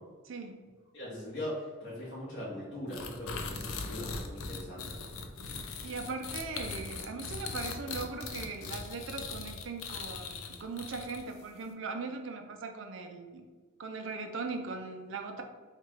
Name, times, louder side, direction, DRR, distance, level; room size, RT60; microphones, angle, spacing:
voice 1, 0.2-0.6 5.8-13.5 13.8-15.4, right 4 dB, 65° right, 5 dB, 0.5 m, -39 dB
voice 2, 0.9-5.0, left 1 dB, 55° left, -8 dB, 1.2 m, -40 dB
sound 1, 2.9-11.4, left 4 dB, 85° left, 0.5 m, -40 dB
3.2 x 2.4 x 4.4 m, 1.4 s
head